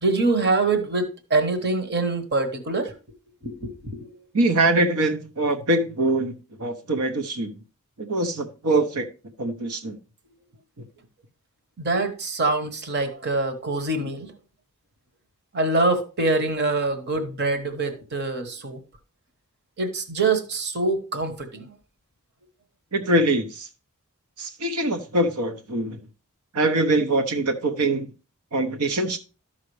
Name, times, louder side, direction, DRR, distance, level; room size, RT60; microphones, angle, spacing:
voice 1, 0.0-2.9 3.4-4.3 11.8-14.3 15.5-18.8 19.8-21.7, right 3 dB, 50° right, 1.1 m, -25 dB
voice 2, 4.3-6.3 6.6-7.5 8.1-9.1 9.4-10.0 22.9-23.7 24.4-26.0 26.5-28.1 28.5-29.2, right 2 dB, 85° right, 0.9 m, -23 dB
13.0 x 5.7 x 3.2 m
head